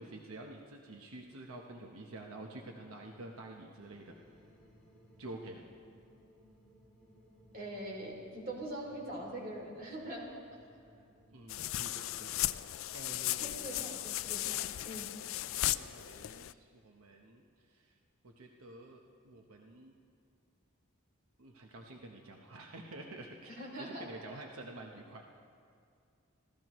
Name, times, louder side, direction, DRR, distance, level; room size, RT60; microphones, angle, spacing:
voice 1, 0.0-4.2 5.2-5.6 11.3-12.5 12.9-14.3 15.6-17.9 18.2-19.9 21.4-25.2, right 2 dB, 80° right, 1 dB, 1.0 m, -49 dB
sound 1, 3.8-11.9, equal, 5° left, 3.7 m, -62 dB
voice 2, 7.5-10.3 10.7-10.8 13.4-15.1 23.5-24.0, right 1 dB, 40° right, -1 dB, 2.9 m, -43 dB
sound 2, 11.5-16.5, left 15 dB, 65° left, 0.4 m, -36 dB
25.5 x 16.0 x 3.1 m, 2.3 s
head